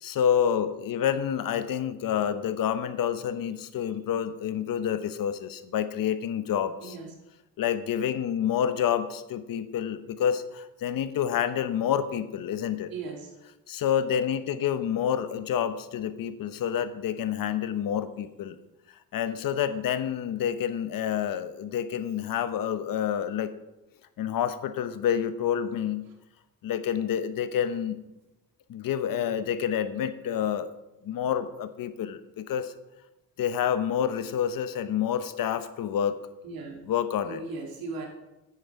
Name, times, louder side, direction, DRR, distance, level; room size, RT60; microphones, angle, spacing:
voice 1, 0.0-7.0 7.6-12.9 13.7-18.6 19.1-23.5 24.2-26.1 26.6-28.0 28.7-30.7 31.0-32.7 33.4-36.2 36.9-37.4, left 9 dB, 70° left, 12 dB, 0.9 m, -28 dB
voice 2, 6.8-7.1 12.9-13.3 36.4-36.8 37.2-38.1, right 3 dB, 80° right, 1 dB, 2.7 m, -37 dB
10.0 x 8.8 x 4.7 m, 0.96 s
cardioid pair, 90°, 35 cm